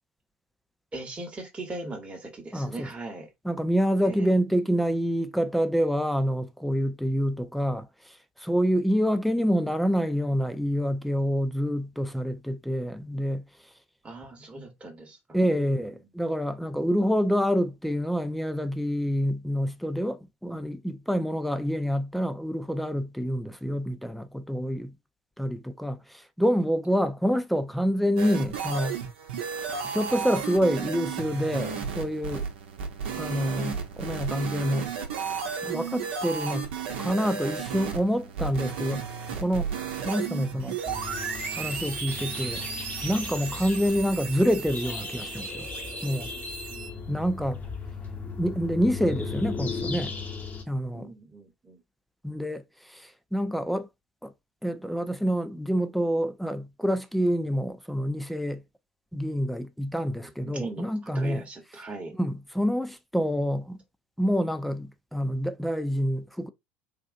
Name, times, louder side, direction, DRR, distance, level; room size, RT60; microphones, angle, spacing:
voice 1, 0.9-3.3 4.0-4.3 14.0-15.9 46.7-47.2 50.9-51.8 60.5-60.8 61.1-62.1, right 2 dB, 20° right, 1.0 m, -39 dB
voice 2, 2.5-2.9 3.4-13.5 15.3-24.9 25.4-29.0 29.8-32.5 33.1-34.9 35.6-36.7 37.0-39.1 39.4-39.7 40.0-40.8 41.6-42.7 43.0-45.7 46.0-46.3 47.1-47.6 48.4-50.1 50.7-51.1 52.2-53.9 54.2-54.3 54.6-58.6 59.1-61.4 62.2-63.8 64.2-66.5, equal, ahead, 0.4 m, -27 dB
sound 1, 28.2-46.9, right 6 dB, 65° right, 0.8 m, -34 dB
sound 2, 40.8-50.6, left 4 dB, 25° left, 0.9 m, -37 dB
3.6 x 2.5 x 2.5 m
figure-of-eight pair, 70°, 6 cm